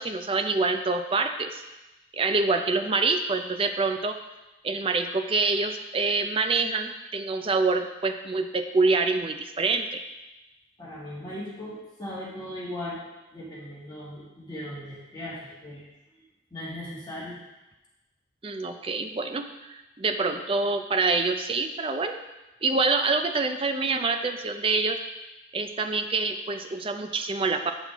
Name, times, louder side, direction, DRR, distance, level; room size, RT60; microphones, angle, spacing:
voice 1, 0.0-1.6 2.1-4.2 4.6-10.0 18.4-22.2 22.6-25.0 25.5-27.7, right 3 dB, 30° right, 6 dB, 0.4 m, -26 dB
voice 2, 10.8-13.0 13.3-15.9 16.1-16.2 16.5-17.4, left 1 dB, 20° left, -7 dB, 2.0 m, -38 dB
8.9 x 5.8 x 3.6 m, 1.0 s
head